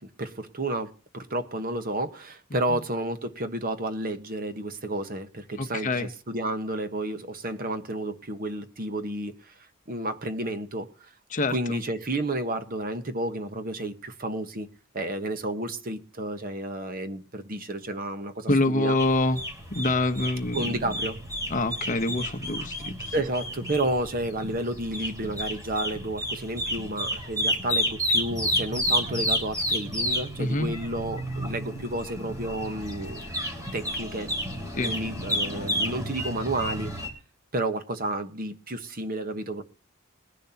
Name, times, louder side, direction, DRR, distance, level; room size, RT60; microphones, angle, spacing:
voice 1, 0.2-9.5 9.9-10.9 11.5-14.7 14.9-18.9 20.5-21.1 23.1-33.2 33.7-34.3 34.9-36.9 37.5-39.6, right 1 dB, 45° right, 1.2 m, -31 dB
voice 2, 5.6-6.1 11.3-11.8 18.5-19.4 19.7-21.0 21.5-23.1 30.4-30.7 34.7-34.9, left 2 dB, 40° left, 1.0 m, -26 dB
sound 1, 19.0-37.1, equal, 15° right, 3.2 m, -31 dB
21.0 x 10.5 x 2.8 m
head